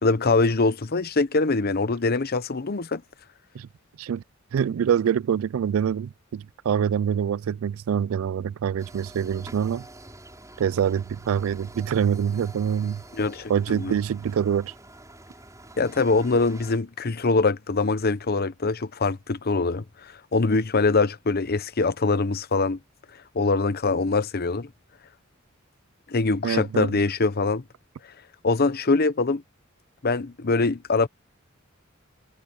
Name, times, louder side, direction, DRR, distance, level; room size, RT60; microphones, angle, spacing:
voice 1, 0.0-3.0 13.1-13.9 15.8-22.8 23.3-24.7 26.1-27.6 28.4-29.4 30.0-31.1, left 3 dB, 45° left, 0.9 m, -23 dB
voice 2, 4.5-9.8 10.6-13.0 13.5-14.7 26.4-27.0, right 8 dB, 70° right, 0.3 m, -25 dB
sound 1, 8.8-16.8, right 1 dB, 15° right, 6.8 m, -47 dB
head